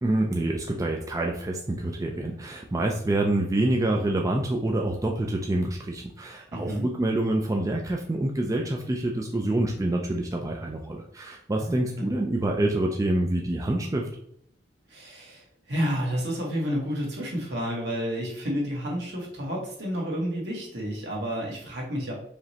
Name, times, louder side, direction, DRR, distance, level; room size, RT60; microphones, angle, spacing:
voice 1, 0.0-14.1, right 1 dB, 20° right, 1 dB, 0.4 m, -27 dB
voice 2, 6.5-6.9 11.6-12.1 14.9-22.1, equal, 65° right, -2 dB, 1.5 m, -30 dB
4.9 x 3.1 x 2.8 m, 0.70 s
head